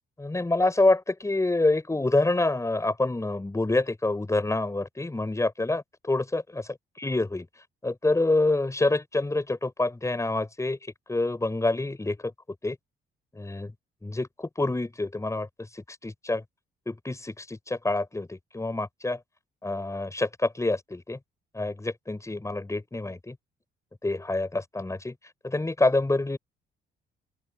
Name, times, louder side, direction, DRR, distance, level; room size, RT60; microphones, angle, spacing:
voice 1, 0.2-6.6 7.0-7.5 7.8-10.8 11.1-12.3 12.6-12.8 13.3-13.7 14.0-15.5 15.7-16.4 16.9-19.2 19.6-21.2 21.5-23.3 24.0-25.1 25.4-26.4, left 2 dB, 15° left, 5.8 m, -27 dB
open air
cardioid pair, 90°, 20 cm